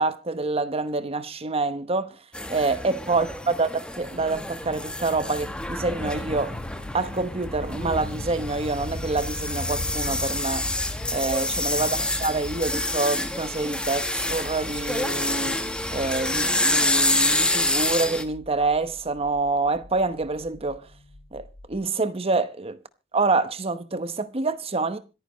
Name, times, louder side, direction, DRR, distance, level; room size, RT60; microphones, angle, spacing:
voice 1, 0.0-2.2 2.5-6.6 6.9-10.7 11.1-15.6 15.9-20.9 21.3-22.8 23.1-25.0, right 3 dB, 30° right, 0.9 m, -27 dB
sound 1, 2.3-18.2, left 1 dB, 5° left, 1.2 m, -28 dB
sound 2, 4.0-21.8, left 2 dB, 30° left, 0.7 m, -39 dB
26.0 x 9.7 x 3.1 m
head